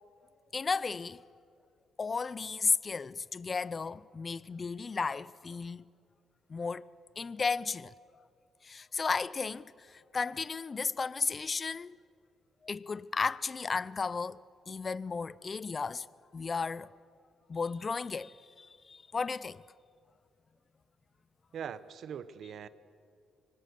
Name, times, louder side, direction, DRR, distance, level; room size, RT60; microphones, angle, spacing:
voice 1, 0.5-1.2 2.0-5.8 6.5-6.9 7.2-7.9 8.6-12.0 12.6-14.4 14.7-16.1 16.3-16.9 17.5-19.6, left 4 dB, 35° left, 0.6 m, -34 dB
voice 2, 21.5-22.7, right 8 dB, 65° right, 1.0 m, -41 dB
25.5 x 24.5 x 6.9 m
cardioid pair, 90°, 0 cm